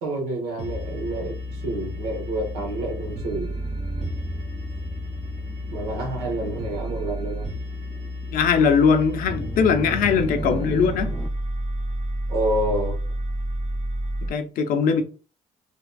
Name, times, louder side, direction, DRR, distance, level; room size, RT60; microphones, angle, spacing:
voice 1, 0.0-3.5 5.7-7.5 10.4-10.6 12.3-13.0, right 1 dB, 90° right, 1.2 m, -28 dB
sound 1, 0.6-14.3, equal, 50° right, 1.2 m, -31 dB
sound 2, 0.7-11.3, equal, 10° left, 0.4 m, -37 dB
voice 2, 8.3-11.1 14.2-15.0, left 6 dB, 70° left, 0.6 m, -20 dB
3.5 x 3.0 x 2.3 m
supercardioid pair, 65°, 15 cm